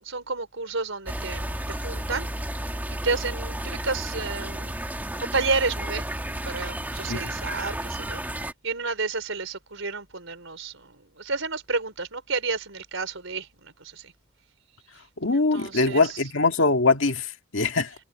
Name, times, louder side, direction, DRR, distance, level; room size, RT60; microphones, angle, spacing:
voice 1, 0.0-2.3 3.0-4.7 5.1-6.0 6.4-8.2 8.6-14.1 15.3-16.1, right 4 dB, 75° right, 4.6 m, -31 dB
sound 1, 1.0-8.5, right 1 dB, 10° right, 1.5 m, -32 dB
voice 2, 15.2-17.9, left 3 dB, 70° left, 2.0 m, -22 dB
head